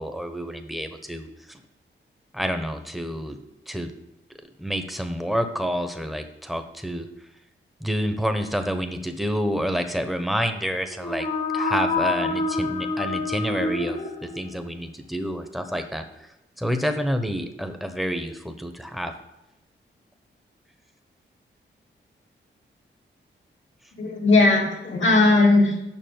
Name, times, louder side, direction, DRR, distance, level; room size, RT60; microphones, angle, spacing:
voice 1, 0.0-1.6 2.3-3.4 3.7-3.9 4.6-7.1 7.8-11.3 11.5-16.0 16.6-19.1, equal, ahead, 7 dB, 1.0 m, -28 dB
sound 1, 10.9-14.7, left 3 dB, 40° left, 0.9 m, -27 dB
voice 2, 23.9-25.8, left 2 dB, 70° left, -2 dB, 2.4 m, -18 dB
7.1 x 6.0 x 7.7 m, 0.92 s
cardioid pair, 85°, 20 cm